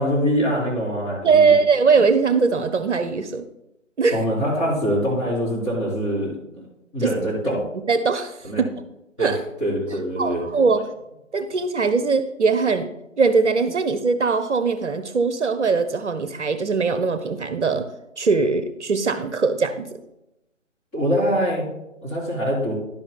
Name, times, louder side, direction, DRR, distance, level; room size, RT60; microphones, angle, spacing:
voice 1, 0.0-1.6 4.1-6.6 6.9-7.6 8.4-8.6 9.2-10.4 20.9-21.7 22.0-22.8, equal, 15° left, -7 dB, 3.7 m, -24 dB
voice 2, 1.2-3.4 4.0-4.2 7.0-7.1 7.9-8.4 9.2-9.4 10.2-10.8 11.3-12.9 13.2-17.9 18.2-20.0, right 4 dB, 60° right, 9 dB, 0.8 m, -20 dB
11.0 x 10.5 x 2.2 m, 0.88 s
figure-of-eight pair, 150°, 39 cm